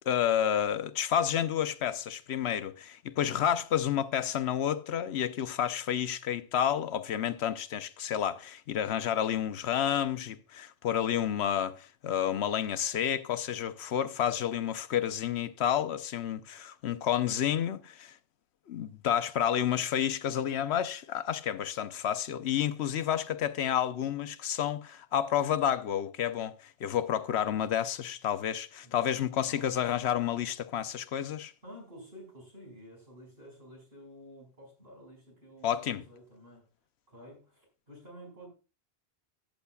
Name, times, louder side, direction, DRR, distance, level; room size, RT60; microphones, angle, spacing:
voice 1, 0.1-18.2 18.7-31.5 35.6-36.0, left 9 dB, 90° left, 1.0 m, -30 dB
voice 2, 28.8-29.7 31.6-36.6 37.1-38.5, equal, 70° right, 5.6 m, -51 dB
14.0 x 9.1 x 2.3 m
omnidirectional pair, 1.1 m